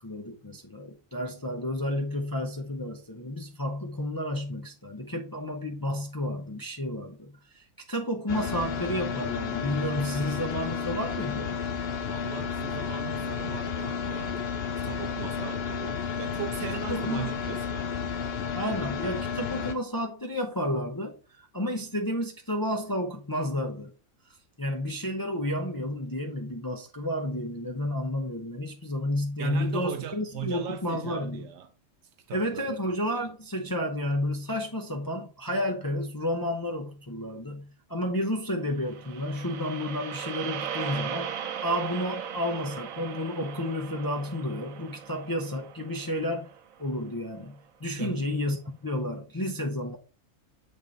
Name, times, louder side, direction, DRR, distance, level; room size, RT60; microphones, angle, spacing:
voice 1, 0.0-11.6 16.9-17.3 18.5-23.9 24.3-31.5 32.3-41.4 41.6-46.5 46.8-50.0, left 1 dB, 25° left, 0.5 m, -31 dB
sound 1, 8.3-19.7, left 6 dB, 55° left, 0.8 m, -32 dB
voice 2, 12.1-14.4 14.8-17.9 29.4-31.7 32.3-32.8 48.0-48.2, right 9 dB, 65° right, 0.8 m, -38 dB
sound 2, 38.8-47.1, right 8 dB, 85° right, 1.1 m, -38 dB
7.3 x 3.5 x 3.8 m
omnidirectional pair, 1.4 m